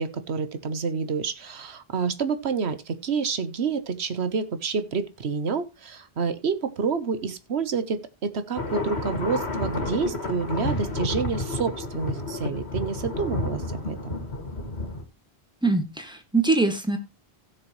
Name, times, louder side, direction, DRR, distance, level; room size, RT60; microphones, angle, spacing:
voice 1, 0.0-14.2, right 5 dB, 80° right, 11 dB, 1.4 m, -28 dB
sound 1, 8.5-15.0, left 2 dB, 85° left, 2.5 m, -30 dB
voice 2, 15.6-17.0, right 3 dB, 5° right, 6 dB, 1.8 m, -23 dB
16.0 x 6.7 x 3.1 m, 0.25 s
omnidirectional pair, 1.1 m